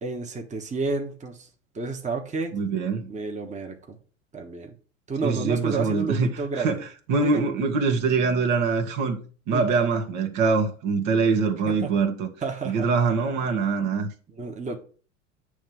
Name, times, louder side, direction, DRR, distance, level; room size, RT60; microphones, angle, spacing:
voice 1, 0.0-1.5 1.7-2.6 3.1-4.0 4.3-4.7 5.1-6.8 7.2-7.4 9.5-9.6 11.7-11.9 12.4-12.9 14.3-14.8, right 4 dB, 20° right, 1.3 m, -30 dB
voice 2, 2.5-3.1 5.2-6.8 7.1-9.2 9.5-12.3 12.6-14.1, right 4 dB, 55° right, 1.7 m, -24 dB
9.0 x 3.4 x 6.0 m
hypercardioid pair, 100°, 38 cm